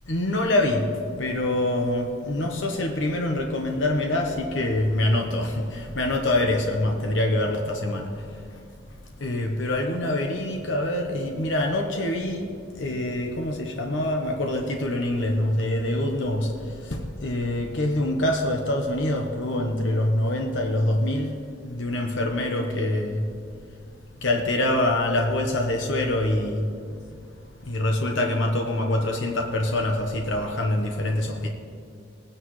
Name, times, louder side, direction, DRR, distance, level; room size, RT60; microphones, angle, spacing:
voice 1, 0.1-0.9 1.2-8.1 9.2-12.5 12.8-21.4 21.6-23.3 24.2-26.7 27.6-31.5, left 1 dB, 75° left, 2 dB, 1.1 m, -25 dB
20.0 x 10.0 x 3.2 m, 2.4 s
head